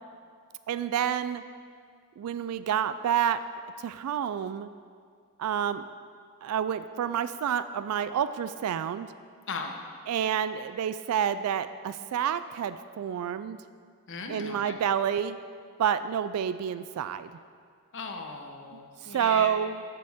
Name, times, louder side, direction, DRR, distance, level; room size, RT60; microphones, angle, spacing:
voice 1, 0.7-1.4 2.2-3.4 3.8-4.7 5.4-5.8 6.4-9.1 10.1-13.6 14.3-15.4 15.8-17.3 19.0-19.8, right 8 dB, 80° right, 13 dB, 0.3 m, -28 dB
voice 2, 14.1-14.8 17.9-19.5, left 4 dB, 60° left, 3 dB, 0.9 m, -38 dB
14.0 x 6.8 x 3.6 m, 2.1 s
head